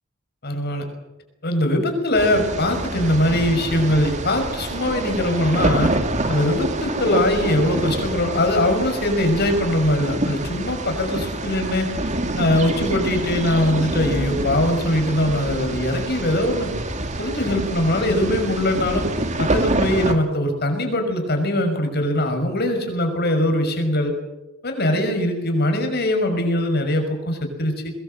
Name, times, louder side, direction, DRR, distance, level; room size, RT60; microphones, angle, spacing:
voice 1, 0.4-0.8 1.4-5.9 6.3-11.9 12.4-16.7 17.2-19.1 19.4-24.1 24.6-27.9, left 1 dB, 50° left, 5 dB, 6.0 m, -21 dB
sound 1, 2.1-20.1, right 2 dB, 35° right, 2.5 m, -26 dB
22.0 x 22.0 x 7.8 m, 1.0 s
head